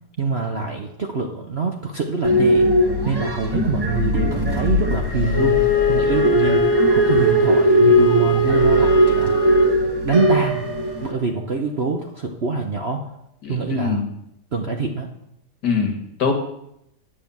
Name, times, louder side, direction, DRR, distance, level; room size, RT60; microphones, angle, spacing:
voice 1, 0.2-2.7 3.0-6.7 6.9-9.3 10.0-10.7 11.0-13.1 13.5-14.1 14.5-15.1, right 4 dB, 45° right, 2 dB, 0.9 m, -25 dB
sound 1, 2.2-11.1, equal, 20° right, 0.8 m, -19 dB
Wind instrument woodwind instrument, 5.3-9.8, equal, 85° left, 1.8 m, -21 dB
Piano, 10.1-12.0, right 5 dB, 60° right, 1.8 m, -33 dB
voice 2, 13.4-14.1 15.6-16.3, left 5 dB, 60° left, 3 dB, 2.2 m, -23 dB
8.8 x 8.5 x 7.0 m, 0.78 s
omnidirectional pair, 2.0 m